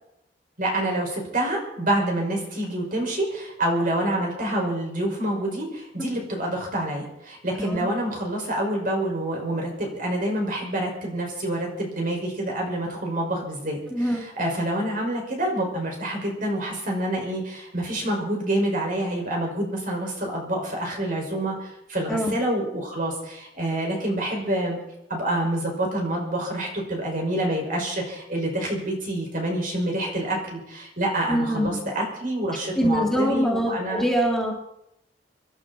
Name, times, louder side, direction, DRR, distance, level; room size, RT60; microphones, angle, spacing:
voice 1, 0.6-24.8 25.1-34.0, right 1 dB, 50° right, 0 dB, 5.6 m, -27 dB
voice 2, 13.9-14.2 22.1-22.3 31.3-31.9 32.8-34.5, equal, 5° left, 0 dB, 1.8 m, -24 dB
26.5 x 11.5 x 4.3 m, 0.80 s
head